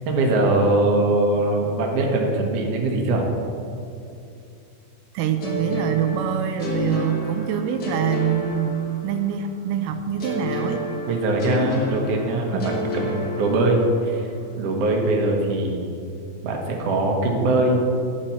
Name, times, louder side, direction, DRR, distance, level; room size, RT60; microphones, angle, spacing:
voice 1, 0.1-3.3 11.1-14.3 14.6-15.9 16.4-17.8, right 2 dB, 55° right, 0 dB, 2.0 m, -21 dB
voice 2, 5.1-10.8 12.5-12.7, right 9 dB, 85° right, 7 dB, 2.2 m, -25 dB
sound 1, 5.4-9.3 10.2-14.1, left 1 dB, 45° left, 1.2 m, -30 dB
11.5 x 8.6 x 4.3 m, 2.5 s
omnidirectional pair, 3.7 m